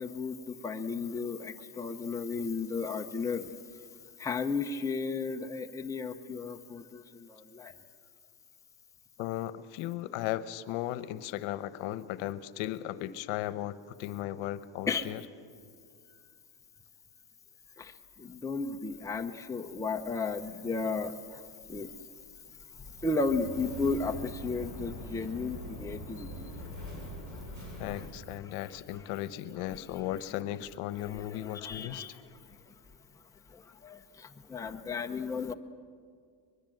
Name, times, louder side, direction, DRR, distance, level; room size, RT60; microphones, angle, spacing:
voice 1, 0.0-3.5 4.2-7.8 14.9-15.1 17.8-21.4 21.7-21.9 22.8-27.1 27.3-29.1 29.5-30.2 30.5-30.6 30.9-32.7 33.5-35.5, left 4 dB, 5° left, 4 dB, 0.7 m, -35 dB
voice 2, 9.2-15.2 27.8-32.0, left 13 dB, 70° left, 14 dB, 1.1 m, -36 dB
sound 1, 22.8-28.1, left 1 dB, 35° right, 7.6 m, -43 dB
23.0 x 22.0 x 7.8 m, 2.2 s
cardioid pair, 130°, 49 cm